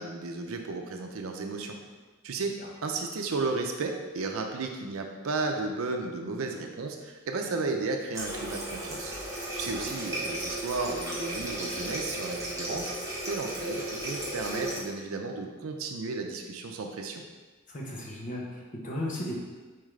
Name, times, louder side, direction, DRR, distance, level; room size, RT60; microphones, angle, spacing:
voice 1, 0.0-1.8 2.2-9.1 9.5-12.9 13.3-17.2, right 3 dB, 85° right, 3 dB, 0.5 m, -33 dB
Water tap faucet, 8.1-14.8, right 1 dB, 15° right, 1.0 m, -35 dB
voice 2, 17.7-19.4, left 1 dB, 40° left, -3 dB, 0.9 m, -36 dB
4.5 x 3.6 x 3.2 m, 1.3 s
head